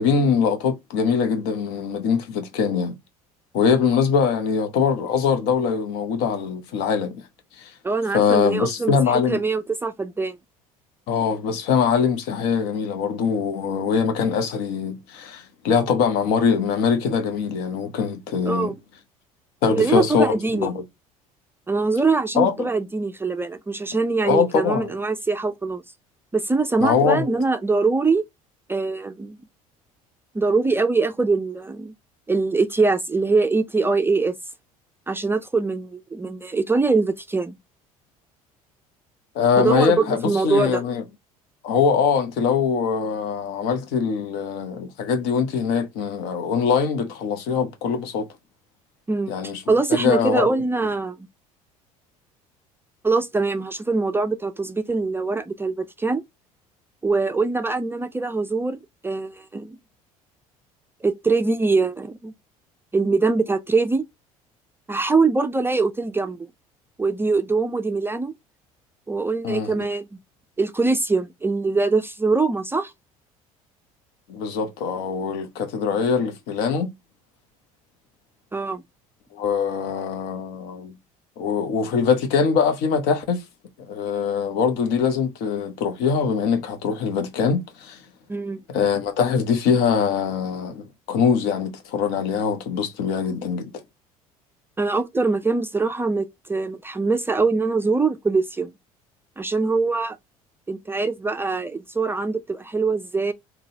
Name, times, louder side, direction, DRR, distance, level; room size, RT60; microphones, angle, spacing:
voice 1, 0.0-3.0 3.5-7.2 7.6-7.7 8.1-9.4 11.1-18.7 19.6-20.8 22.3-22.7 24.2-24.9 26.8-27.3 39.3-41.0 41.6-48.3 49.3-49.6 49.9-50.5 69.4-69.8 74.3-76.9 79.3-80.9 81.4-83.4 83.9-88.0 88.7-93.7, left 6 dB, 60° left, 0.9 m, -22 dB
voice 2, 7.8-10.4 18.5-18.8 19.7-20.7 21.7-25.8 26.3-28.2 28.7-29.4 30.3-31.9 32.3-34.3 35.1-37.6 39.6-40.8 49.1-51.2 53.0-56.2 57.0-58.8 59.0-59.8 61.0-62.3 62.9-64.0 64.9-66.5 67.0-68.3 69.1-70.1 70.6-72.9 78.5-78.8 88.3-88.6 94.8-98.7 99.4-100.2 100.7-103.3, right 3 dB, 10° right, 0.4 m, -23 dB
3.8 x 2.3 x 2.7 m
figure-of-eight pair, 60°, 19 cm